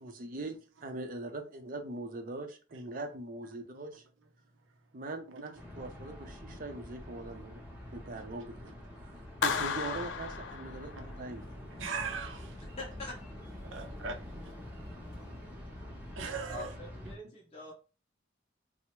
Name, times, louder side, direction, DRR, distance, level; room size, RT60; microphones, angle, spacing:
voice 1, 0.0-4.0 4.9-7.6 7.9-8.7 9.0-11.7, right 2 dB, 45° right, 0.5 m, -42 dB
sound 1, 5.5-17.2, left 1 dB, 10° right, 0.7 m, -46 dB
Clapping, 9.4-11.3, left 6 dB, 80° left, 0.4 m, -34 dB
voice 2, 11.7-12.5 13.6-14.3 16.2-16.7, right 5 dB, 90° right, 0.6 m, -38 dB
voice 3, 12.8-13.2 16.5-17.7, left 2 dB, 35° left, 0.6 m, -43 dB
3.3 x 2.0 x 2.9 m
head